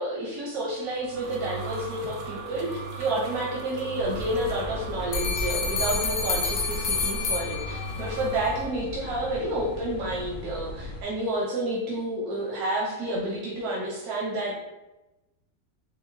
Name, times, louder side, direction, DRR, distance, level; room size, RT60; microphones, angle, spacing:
voice 1, 0.0-14.5, right 1 dB, 90° right, -4 dB, 1.2 m, -30 dB
sound 1, 0.7-8.7, right 4 dB, 65° right, 0.6 m, -38 dB
sound 2, 4.0-11.0, left 3 dB, 60° left, 0.5 m, -37 dB
sound 3, 5.1-8.2, left 4 dB, 80° left, 1.1 m, -28 dB
4.8 x 2.2 x 2.5 m, 0.99 s
omnidirectional pair, 1.5 m